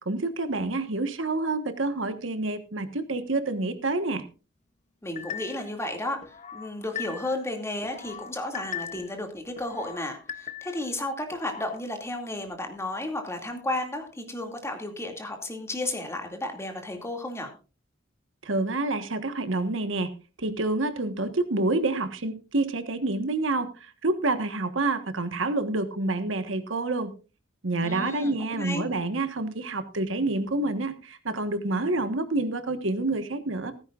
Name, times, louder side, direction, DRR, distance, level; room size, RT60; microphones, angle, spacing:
voice 1, 0.0-4.2 18.4-20.1 20.4-27.1 27.6-33.7, right 2 dB, 75° right, 10 dB, 1.4 m, -28 dB
voice 2, 5.0-17.5 27.8-28.9, left 1 dB, 15° left, 4 dB, 2.4 m, -33 dB
sound 1, 5.2-5.7 6.2-7.5 7.8-9.2 9.6-10.9 11.3-11.8, left 8 dB, 40° left, 0.8 m, -39 dB
15.5 x 14.5 x 2.5 m, 0.33 s
head